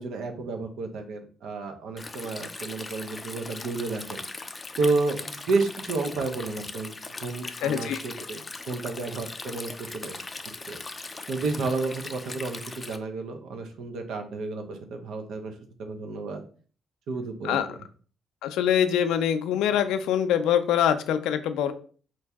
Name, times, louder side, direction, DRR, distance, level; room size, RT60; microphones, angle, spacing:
voice 1, 0.0-4.2 4.8-6.9 7.2-8.4 8.7-10.2 10.7-10.8 11.3-15.5 15.8-16.4 17.1-17.6, right 3 dB, 75° right, 5 dB, 0.7 m, -31 dB
Stream, 2.0-13.0, left 3 dB, 25° left, 0.4 m, -39 dB
voice 2, 7.6-8.0 17.4-17.7 18.4-21.7, left 9 dB, 90° left, 10 dB, 0.4 m, -24 dB
4.6 x 2.6 x 3.5 m, 0.41 s
cardioid pair, 90°, 0 cm